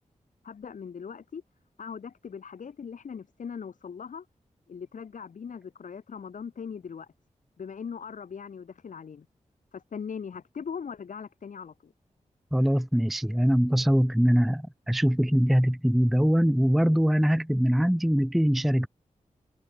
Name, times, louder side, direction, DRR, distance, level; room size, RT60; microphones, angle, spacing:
voice 1, 0.4-1.4 1.8-4.3 4.7-7.1 7.6-9.3 9.7-11.9, left 6 dB, 85° left, 5.7 m, -40 dB
voice 2, 12.5-18.9, equal, ahead, 0.4 m, -23 dB
wide cardioid pair, 165°, 13 cm